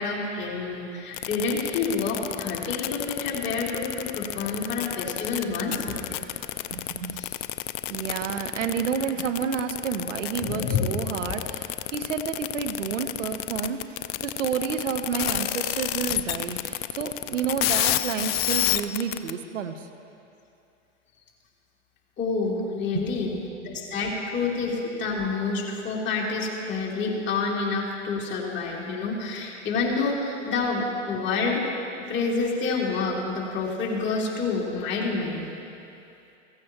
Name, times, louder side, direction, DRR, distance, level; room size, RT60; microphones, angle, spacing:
voice 1, 0.0-6.0 7.2-7.3 10.4-10.9 11.3-11.4 22.2-23.3 23.6-31.6 32.1-35.5, left 4 dB, 30° left, -4 dB, 3.0 m, -28 dB
sound 1, 1.1-19.3, left 15 dB, 55° left, 0.6 m, -29 dB
voice 2, 5.4-6.3 6.7-7.2 7.9-19.9 22.9-23.8, right 7 dB, 80° right, 8 dB, 1.0 m, -31 dB
15.5 x 15.5 x 3.0 m, 2.7 s
hypercardioid pair, 105°, 37 cm